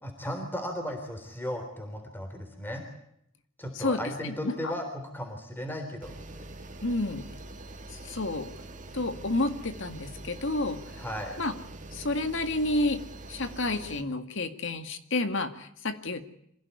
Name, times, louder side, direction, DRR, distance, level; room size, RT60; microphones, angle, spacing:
voice 1, 0.0-2.8 3.6-6.5 11.0-11.4, equal, 10° left, 4 dB, 3.7 m, -36 dB
voice 2, 3.7-4.5 6.8-7.2 7.9-8.5 8.9-11.0 11.4-11.5 11.9-13.0 13.3-16.2, left 2 dB, 60° left, 9 dB, 2.1 m, -30 dB
sound 1, 6.0-14.0, right 2 dB, 35° right, 1.8 m, -44 dB
26.0 x 16.5 x 9.7 m, 0.73 s
head